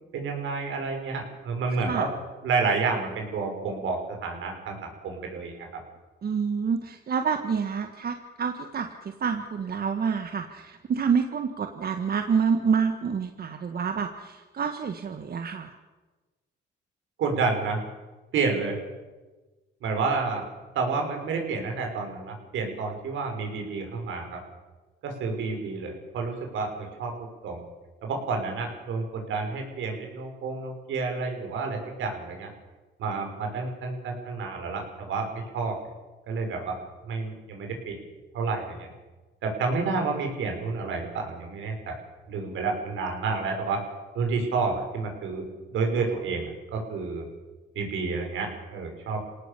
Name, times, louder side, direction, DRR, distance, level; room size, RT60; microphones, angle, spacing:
voice 1, 0.0-2.1 2.4-5.7 17.2-17.8 18.3-18.8 19.8-20.4 20.7-24.4 25.0-27.6 28.0-32.5 33.0-35.7 36.3-36.8 37.0-38.0 38.3-38.9 39.4-42.0 42.3-43.8 44.1-47.2 47.7-49.3, right 4 dB, 80° right, 3 dB, 6.4 m, -30 dB
voice 2, 6.2-15.7, right 6 dB, 50° right, 6 dB, 1.7 m, -28 dB
27.5 x 18.5 x 6.9 m, 1.2 s
cardioid pair, 90°, 20 cm